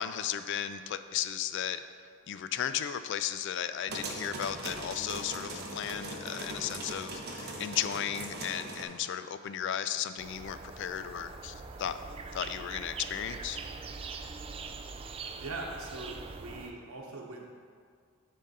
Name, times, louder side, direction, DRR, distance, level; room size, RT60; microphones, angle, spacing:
voice 1, 0.0-1.8 2.3-12.0 12.3-13.6, left 9 dB, 55° left, 12 dB, 0.3 m, -35 dB
sound 1, 3.9-8.8, right 2 dB, 50° right, 0.9 m, -40 dB
sound 2, 10.2-16.7, right 4 dB, 25° right, 0.3 m, -43 dB
voice 2, 15.3-17.4, right 2 dB, 80° right, -1 dB, 1.0 m, -41 dB
10.0 x 3.7 x 4.1 m, 2.1 s
head